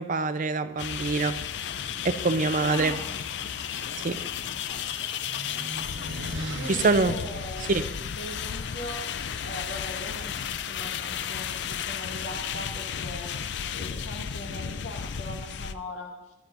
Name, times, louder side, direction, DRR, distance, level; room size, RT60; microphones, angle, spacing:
voice 1, 0.0-1.3 2.0-2.9 4.0-4.2 6.8-7.1 7.7-7.8, right 3 dB, 45° right, 11 dB, 0.5 m, -24 dB
sound 1, 0.8-15.7, left 8 dB, 65° left, 0.4 m, -33 dB
voice 2, 2.6-3.3 6.5-16.3, left 1 dB, 80° left, 0 dB, 2.1 m, -40 dB
sound 2, 3.6-8.4, right 1 dB, 75° right, 1.1 m, -41 dB
15.0 x 11.0 x 2.6 m, 0.92 s
head